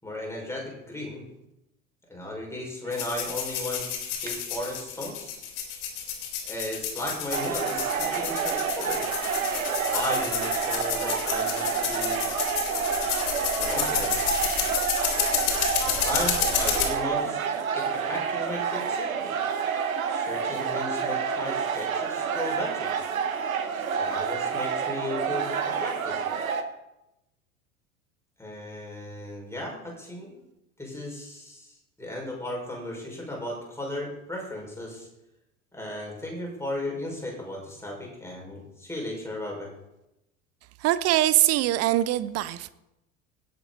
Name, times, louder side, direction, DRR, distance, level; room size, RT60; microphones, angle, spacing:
voice 1, 0.0-1.2 2.1-3.9 4.2-5.4 6.4-9.0 9.9-12.3 13.6-14.2 15.8-19.3 20.1-22.9 24.0-26.2 28.4-30.4 30.8-35.1 35.7-39.7, left 1 dB, 5° left, -2 dB, 5.4 m, -35 dB
sound 1, 2.8-3.2 3.5-3.6 3.9-4.4 8.9-10.1 10.5-11.0 13.0-15.0 15.4-15.8 16.3-16.9 17.3-17.4, right 5 dB, 20° right, 1.7 m, -44 dB
sound 2, 2.9-16.8, left 8 dB, 50° left, 3.7 m, -30 dB
sound 3, 7.3-26.6, right 6 dB, 75° right, 1.1 m, -29 dB
voice 2, 40.8-42.7, right 14 dB, 35° right, 16 dB, 0.7 m, -23 dB
18.0 x 8.0 x 4.1 m, 0.89 s
figure-of-eight pair, 75°, 41 cm